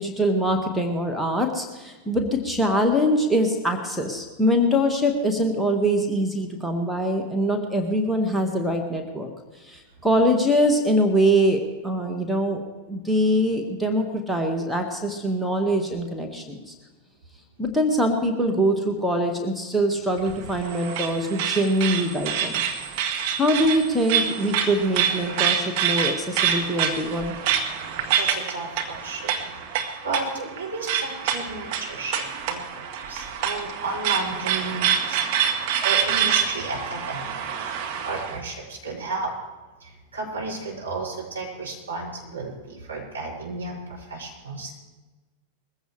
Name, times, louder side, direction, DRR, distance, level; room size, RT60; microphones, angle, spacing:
voice 1, 0.0-9.3 9.7-16.7 17.6-22.6 23.4-27.3, equal, ahead, 2 dB, 1.7 m, -23 dB
sound 1, 20.2-38.4, right 8 dB, 45° right, 1.6 m, -26 dB
voice 2, 28.2-29.4 30.0-32.2 32.5-37.5 38.1-39.3 39.8-44.7, right 3 dB, 75° right, -4 dB, 6.2 m, -33 dB
21.0 x 15.0 x 3.4 m, 1.2 s
figure-of-eight pair, 90°, 0 cm